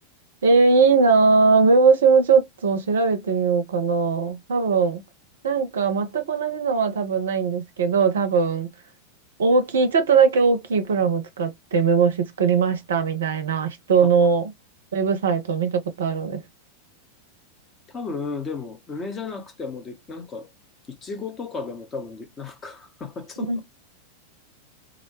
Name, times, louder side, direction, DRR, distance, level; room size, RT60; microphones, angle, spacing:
voice 1, 0.4-5.0 5.4-8.7 9.4-14.4 14.9-16.4 23.5-23.6, right 5 dB, 65° right, 0.4 m, -20 dB
voice 2, 17.9-20.5 20.9-23.6, left 4 dB, 25° left, 0.6 m, -34 dB
2.4 x 2.0 x 2.9 m
figure-of-eight pair, 90°, 0 cm